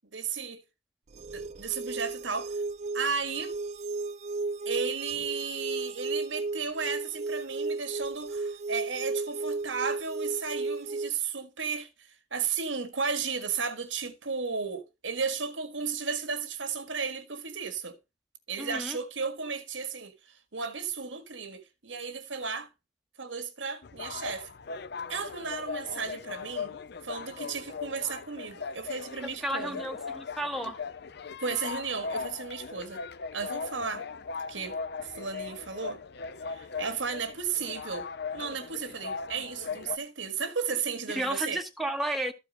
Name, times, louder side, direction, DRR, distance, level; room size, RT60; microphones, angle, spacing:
voice 1, 0.1-0.6 1.3-2.6 2.9-3.6 4.7-18.0 18.5-22.7 23.2-24.5 25.1-26.7 27.0-29.8 31.4-33.0 33.3-34.1 34.5-36.0 36.4-38.1 38.3-41.6, right 5 dB, 90° right, 1.7 m, -34 dB
sound 1, 1.1-11.1, right 3 dB, 35° right, 0.5 m, -34 dB
voice 2, 18.6-19.0 29.2-30.8 41.1-42.3, right 1 dB, ahead, 1.3 m, -32 dB
sound 2, 23.8-40.0, left 5 dB, 60° left, 0.6 m, -39 dB
13.5 x 4.8 x 5.1 m
head